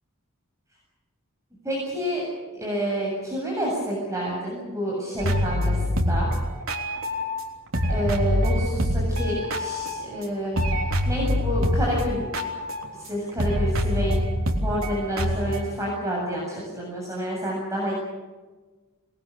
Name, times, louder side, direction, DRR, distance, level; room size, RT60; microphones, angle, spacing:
voice 1, 1.6-2.2 2.5-6.3 7.9-10.6 11.1-12.3 13.0-14.2 14.5-17.9, equal, 15° right, -4 dB, 7.6 m, -28 dB
sound 1, 5.2-7.4 7.7-10.2 10.5-15.7, equal, 70° right, 3.4 m, -25 dB
26.0 x 20.5 x 7.0 m, 1.3 s
head